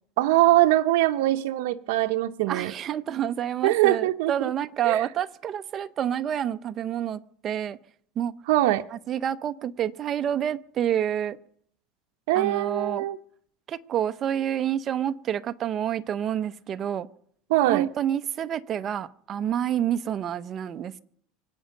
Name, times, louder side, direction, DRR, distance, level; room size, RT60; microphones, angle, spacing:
voice 1, 0.2-2.7 3.6-4.5 4.8-5.0 8.5-8.9 12.3-13.2 17.5-17.9, right 15 dB, 70° right, 5 dB, 0.7 m, -22 dB
voice 2, 2.5-7.8 8.2-8.3 9.1-11.4 12.3-13.1 13.7-17.1 17.7-21.0, right 10 dB, 25° right, 12 dB, 0.6 m, -28 dB
24.5 x 8.9 x 6.6 m, 0.64 s
cardioid pair, 165°, 0 cm